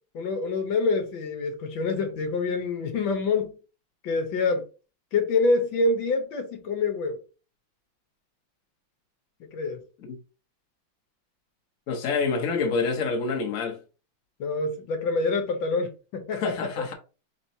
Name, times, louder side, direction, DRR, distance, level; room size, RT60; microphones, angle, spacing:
voice 1, 0.1-3.6 4.0-4.6 5.1-7.2 9.4-9.8 14.4-16.8, left 3 dB, 80° left, 1.7 m, -26 dB
voice 2, 11.9-13.8 16.3-16.9, left 4 dB, 50° left, 1.3 m, -27 dB
4.5 x 4.1 x 2.7 m
omnidirectional pair, 2.1 m